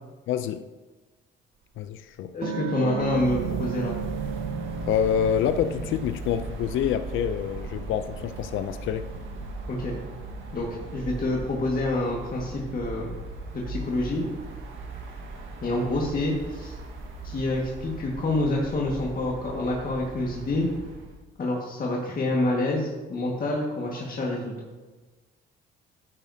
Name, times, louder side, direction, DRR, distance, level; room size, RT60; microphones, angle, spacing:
voice 1, 0.3-0.6 1.8-2.3 4.9-9.1, left 9 dB, 80° left, 0.5 m, -27 dB
sound 1, 1.8-1.9 2.4-7.1 7.4-12.2, right 10 dB, 55° right, 1.5 m, -39 dB
voice 2, 2.3-4.0 9.7-9.9 10.5-13.1 13.5-14.2 15.6-16.7 17.2-20.7 21.4-24.5, left 2 dB, 45° left, 1.8 m, -27 dB
sound 2, 2.9-21.2, right 3 dB, 85° right, 1.6 m, -38 dB
12.0 x 9.4 x 2.8 m
cardioid pair, 90°, 20 cm